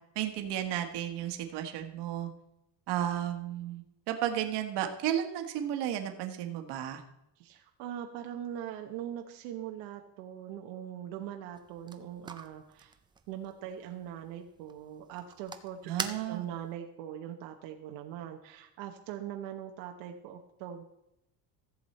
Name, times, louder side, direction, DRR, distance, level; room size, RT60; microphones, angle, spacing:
voice 1, 0.1-2.3 2.9-7.0 15.8-16.5, right 11 dB, 65° right, 6 dB, 1.4 m, -33 dB
voice 2, 7.4-13.0 13.3-20.8, right 10 dB, 90° right, 4 dB, 1.1 m, -41 dB
sound 1, 11.5-16.7, right 5 dB, 10° right, 0.3 m, -45 dB
14.5 x 7.3 x 4.2 m, 0.86 s
cardioid pair, 160°, 44 cm